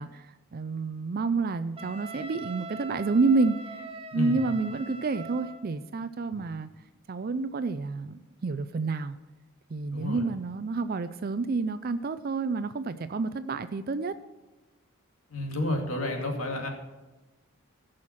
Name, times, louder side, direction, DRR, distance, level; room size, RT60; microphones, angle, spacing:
voice 1, 0.0-6.7 7.1-9.2 9.7-14.2, right 3 dB, 45° right, 12 dB, 0.4 m, -29 dB
Wind instrument woodwind instrument, 1.8-5.7, right 2 dB, 25° right, 1.0 m, -42 dB
voice 2, 9.9-10.2 15.3-16.7, left 1 dB, 85° left, 2 dB, 2.4 m, -30 dB
16.0 x 6.4 x 5.8 m, 1.1 s
head